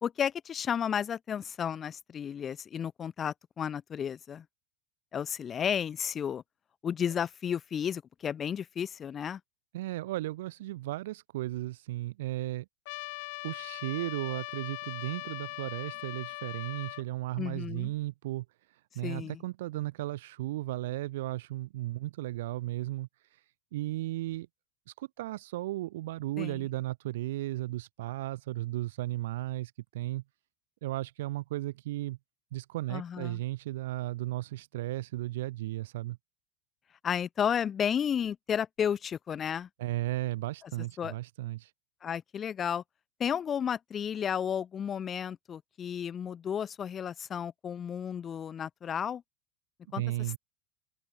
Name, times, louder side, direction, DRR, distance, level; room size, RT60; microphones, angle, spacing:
voice 1, 0.0-4.4 5.1-6.4 6.8-9.4 17.4-17.9 19.0-19.4 26.4-26.7 32.9-33.4 37.0-39.7 41.0-41.1 42.0-42.8 43.2-49.2 49.9-50.0, left 8 dB, 15° left, 0.7 m, -32 dB
voice 2, 9.7-12.6 13.4-23.4 23.7-24.5 25.0-30.2 30.8-32.2 32.5-36.2 39.8-41.7 49.9-50.4, right 16 dB, 65° right, 1.0 m, -35 dB
Trumpet, 12.9-17.0, left 29 dB, 50° left, 0.3 m, -40 dB
open air
supercardioid pair, 175°, 0 cm